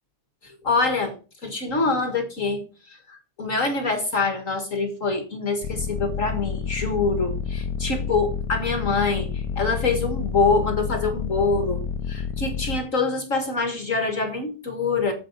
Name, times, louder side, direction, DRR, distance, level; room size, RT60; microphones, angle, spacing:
voice 1, 0.4-1.1 1.4-2.6 2.9-11.8 12.1-15.1, left 3 dB, 50° left, 6 dB, 1.9 m, -25 dB
sound 1, 5.6-12.8, left 7 dB, 85° left, 1.5 m, -29 dB
8.9 x 7.7 x 5.2 m, 0.34 s
omnidirectional pair, 1.8 m